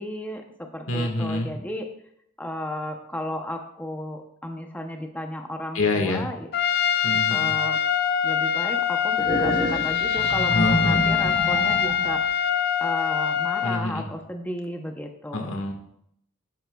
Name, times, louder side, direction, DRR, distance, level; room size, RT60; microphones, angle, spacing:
voice 1, 0.0-1.9 2.4-6.5 7.3-7.8 8.2-15.6, left 1 dB, 10° left, 3 dB, 0.6 m, -34 dB
voice 2, 0.9-1.5 5.7-6.3 7.0-7.5 10.5-11.0 13.6-14.1 15.3-15.7, left 2 dB, 80° left, 3 dB, 1.6 m, -26 dB
Trumpet, 6.5-13.8, left 8 dB, 50° left, 0.5 m, -24 dB
sound 1, 9.2-12.3, equal, 20° right, 2.8 m, -28 dB
12.0 x 10.5 x 2.3 m, 0.73 s
head